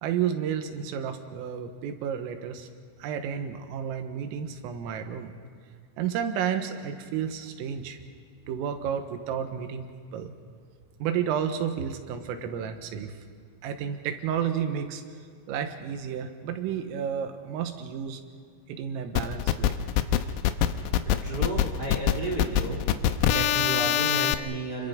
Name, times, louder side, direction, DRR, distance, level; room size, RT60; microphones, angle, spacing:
voice 1, 0.0-2.7 3.0-5.3 6.0-8.0 8.5-9.8 10.1-10.3 11.0-13.2 13.6-15.0 15.5-18.2 18.7-19.7, right 8 dB, 85° right, 6 dB, 4.0 m, -31 dB
sound 1, 19.2-24.3, left 11 dB, 85° left, 3.4 m, -24 dB
voice 2, 21.2-22.8 23.3-24.9, right 3 dB, 30° right, -1 dB, 2.1 m, -32 dB
30.0 x 23.0 x 5.2 m, 2.1 s
omnidirectional pair, 5.9 m